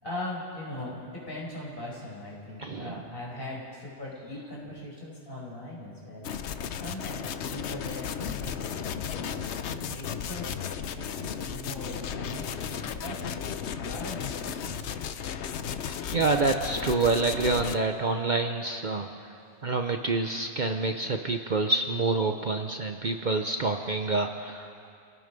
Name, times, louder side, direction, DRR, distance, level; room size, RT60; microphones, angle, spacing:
voice 1, 0.0-6.3 6.8-9.4 9.9-10.5 10.9-14.7, left 1 dB, 50° left, -5 dB, 6.0 m, -40 dB
voice 2, 2.6-3.0 9.8-9.9 16.1-19.1 19.6-24.9, right 3 dB, 45° right, 5 dB, 0.9 m, -27 dB
sound 1, 6.2-17.8, left 8 dB, 70° left, 1.0 m, -35 dB
29.0 x 17.5 x 5.3 m, 2.4 s
omnidirectional pair, 1.2 m